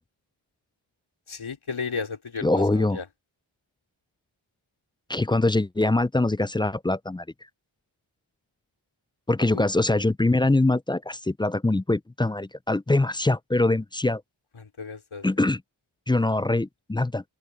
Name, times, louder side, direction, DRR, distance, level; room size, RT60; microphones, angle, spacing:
voice 1, 1.3-3.0 9.5-9.6 14.6-15.3, left 5 dB, 70° left, 3.2 m, -34 dB
voice 2, 2.4-3.0 5.1-7.2 9.3-14.2 15.2-15.6 16.1-17.2, left 2 dB, 10° left, 0.3 m, -23 dB
cardioid pair, 45°, 50 cm